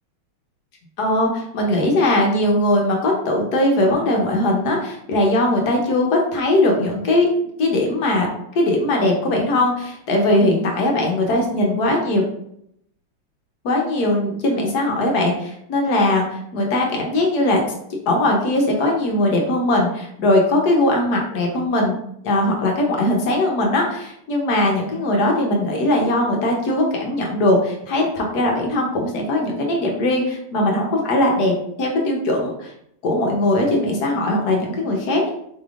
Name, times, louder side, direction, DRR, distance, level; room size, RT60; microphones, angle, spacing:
voice 1, 1.0-7.3 7.6-8.3 8.5-12.2 13.6-17.6 18.1-22.0 22.2-32.7 33.0-35.3, left 1 dB, 60° left, 0 dB, 1.2 m, -20 dB
4.8 x 3.4 x 2.4 m, 0.72 s
omnidirectional pair, 2.2 m